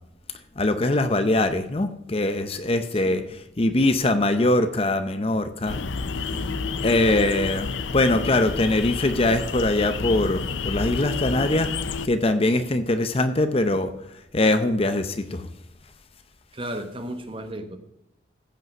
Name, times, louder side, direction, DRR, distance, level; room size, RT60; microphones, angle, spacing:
voice 1, 0.6-3.2 3.6-5.8 6.8-11.7 12.0-13.9 14.3-15.5, left 2 dB, 30° left, 10 dB, 0.6 m, -22 dB
sound 1, 5.7-12.1, left 4 dB, 75° left, 0.6 m, -30 dB
voice 2, 16.5-17.8, right 1 dB, 25° right, 7 dB, 1.1 m, -34 dB
15.0 x 5.6 x 6.1 m, 0.85 s
head